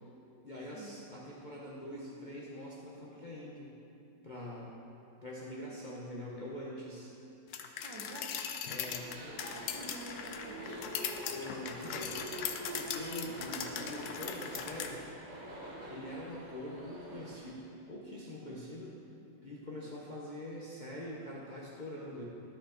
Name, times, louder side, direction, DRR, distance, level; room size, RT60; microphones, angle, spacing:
voice 1, 0.4-3.7 4.2-4.7 5.2-7.1 8.7-9.6 11.3-12.2 12.7-15.0 15.9-19.0 19.4-22.3, left 1 dB, 35° left, -5 dB, 0.8 m, -44 dB
sound 1, 7.5-14.9, left 8 dB, 70° left, 1.0 m, -40 dB
voice 2, 7.8-8.3 9.4-10.9, right 2 dB, 80° right, -1 dB, 2.0 m, -48 dB
sound 2, 8.7-17.5, right 1 dB, 25° right, 1.1 m, -45 dB
12.5 x 5.8 x 4.3 m, 2.8 s
omnidirectional pair, 2.0 m